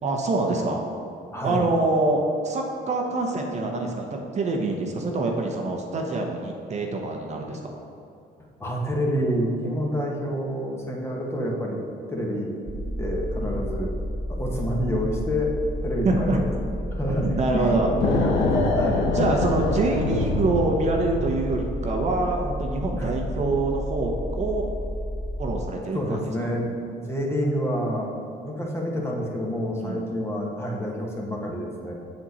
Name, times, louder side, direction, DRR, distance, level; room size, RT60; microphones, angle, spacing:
voice 1, 0.0-0.8 1.4-7.8 13.4-13.5 16.0-16.4 17.2-17.9 19.1-24.7 25.4-26.2 29.7-30.0, right 2 dB, 40° right, 1 dB, 0.9 m, -25 dB
voice 2, 1.3-1.6 8.6-13.9 14.3-15.6 15.8-16.5 16.9-19.1 23.0-23.2 25.9-28.1 28.4-31.9, equal, 15° left, -1 dB, 1.3 m, -28 dB
sound 1, 12.7-25.6, equal, 10° right, 0.7 m, -31 dB
sound 2, 18.0-21.7, left 3 dB, 80° left, 1.1 m, -25 dB
7.5 x 6.5 x 4.2 m, 2.7 s
cardioid pair, 110°, 17 cm